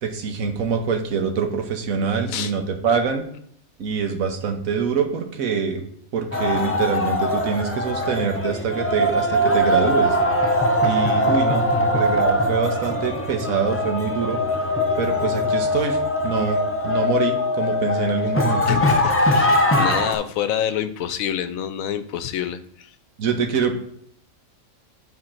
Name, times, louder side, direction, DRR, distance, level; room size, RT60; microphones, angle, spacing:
voice 1, 0.0-3.2 3.8-5.8 6.1-10.2 10.8-14.4 15.0-16.6 16.8-18.8 23.2-23.7, right 6 dB, 85° right, 4 dB, 1.4 m, -24 dB
sound 1, 6.3-20.1, left 1 dB, 20° left, 0.4 m, -21 dB
voice 2, 18.6-22.9, left 9 dB, 85° left, 12 dB, 1.0 m, -27 dB
8.8 x 4.3 x 4.3 m, 0.66 s
omnidirectional pair, 1.4 m